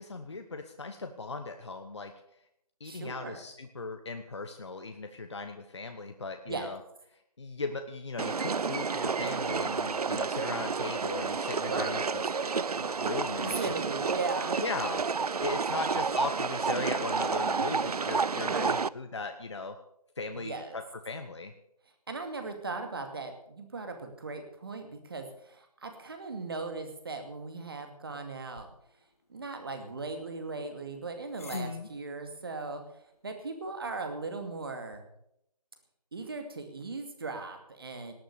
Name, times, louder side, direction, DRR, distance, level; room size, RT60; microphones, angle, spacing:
voice 1, 0.0-2.1 2.8-6.8 7.4-13.7 14.0-14.2 14.6-15.0 15.4-19.7 20.2-21.5 31.5-31.9, left 3 dB, 45° left, 6 dB, 1.1 m, -38 dB
voice 2, 2.8-3.4 6.5-6.7 11.5-12.0 13.4-14.6 18.4-18.8 20.3-20.8 22.1-28.7 29.3-32.8 33.2-35.1 36.1-38.1, right 3 dB, 35° right, 5 dB, 2.4 m, -38 dB
sound 1, 8.2-18.9, right 5 dB, 70° right, 0.5 m, -30 dB
sound 2, 28.5-35.0, left 4 dB, 20° left, 1.6 m, -58 dB
18.5 x 8.6 x 6.8 m, 0.75 s
figure-of-eight pair, 170°, 20 cm